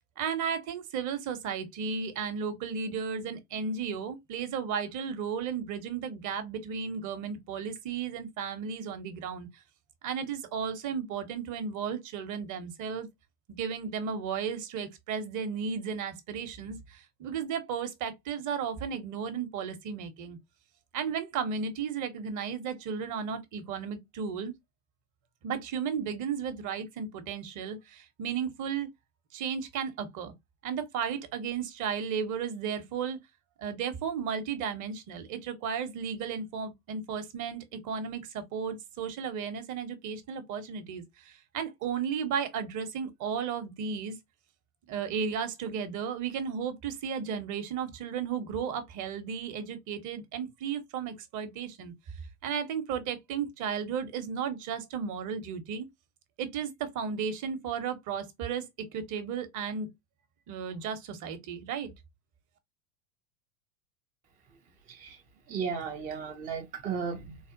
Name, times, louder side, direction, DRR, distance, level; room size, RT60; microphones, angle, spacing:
voice 1, 0.2-9.5 10.0-13.1 13.5-20.4 20.9-24.5 25.4-28.9 29.3-30.3 30.6-33.2 33.6-44.2 44.9-51.9 52.4-55.9 56.4-59.9 60.5-61.9, right 6 dB, 40° right, 0.9 m, -34 dB
voice 2, 64.9-65.2 65.5-67.4, right 6 dB, 20° right, 0.4 m, -35 dB
4.1 x 2.1 x 2.6 m
hypercardioid pair, 110°, 47 cm